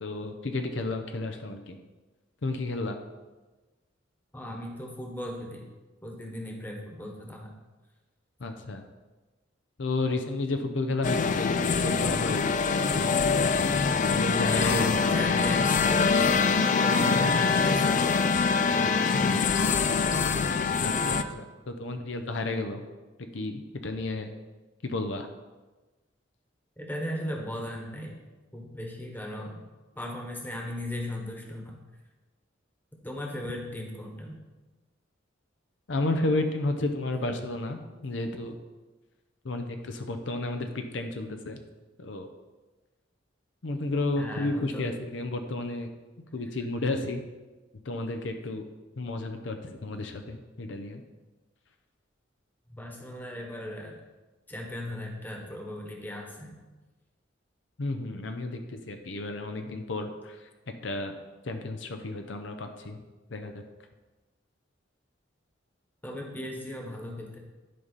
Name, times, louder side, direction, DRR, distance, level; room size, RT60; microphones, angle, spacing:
voice 1, 0.0-1.8 2.4-3.0 8.4-8.8 9.8-12.5 12.8-13.2 14.1-15.0 19.1-19.4 20.8-22.8 23.3-24.3 24.8-25.3 35.9-38.6 39.4-41.6 42.0-42.3 43.6-45.9 46.3-47.2 47.8-48.6 49.0-51.0 57.8-60.5 60.8-61.1 61.4-63.0 63.3-63.6, left 2 dB, 70° left, 6 dB, 0.7 m, -32 dB
voice 2, 4.3-5.7 6.0-7.5 14.5-18.4 18.7-19.8 26.8-28.1 28.5-29.6 29.9-31.8 33.0-34.4 44.2-44.9 52.7-54.0 54.5-56.6 66.0-67.4, left 1 dB, 10° left, 0 dB, 1.2 m, -37 dB
sound 1, 11.0-21.2, left 5 dB, 40° left, 0.3 m, -24 dB
11.0 x 5.3 x 4.1 m, 1.2 s
head